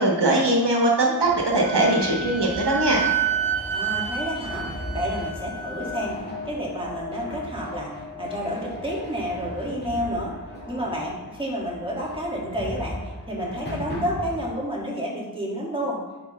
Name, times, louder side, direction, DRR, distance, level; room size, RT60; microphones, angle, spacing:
voice 1, 0.0-3.0, right 2 dB, 90° right, -1 dB, 1.3 m, -21 dB
sound 1, 1.2-14.4, left 1 dB, 25° left, 2.0 m, -37 dB
Wind instrument woodwind instrument, 1.6-6.1, right 7 dB, 30° right, 2.3 m, -29 dB
voice 2, 3.7-10.4 10.7-16.0, equal, 15° right, -4 dB, 2.1 m, -30 dB
9.6 x 4.9 x 3.2 m, 1.1 s
wide cardioid pair, 45°, 40 cm